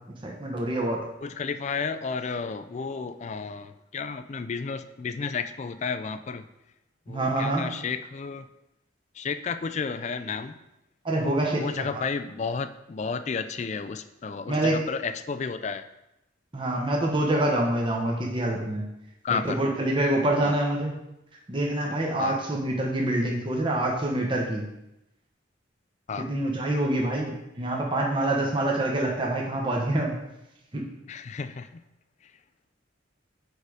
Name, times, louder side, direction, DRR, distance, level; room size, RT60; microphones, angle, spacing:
voice 1, 0.2-1.0 7.1-7.7 11.0-11.9 14.5-14.8 16.5-18.8 19.3-20.9 21.5-24.6 26.2-30.2 30.7-30.8, right 1 dB, 25° right, -1 dB, 0.9 m, -26 dB
voice 2, 1.2-6.4 7.1-8.5 9.2-10.6 11.2-15.9 19.2-19.6 20.4-20.5 22.2-22.4 26.1-26.3 31.1-31.8, left 5 dB, 35° left, 11 dB, 0.3 m, -32 dB
6.6 x 4.7 x 5.0 m, 0.89 s
head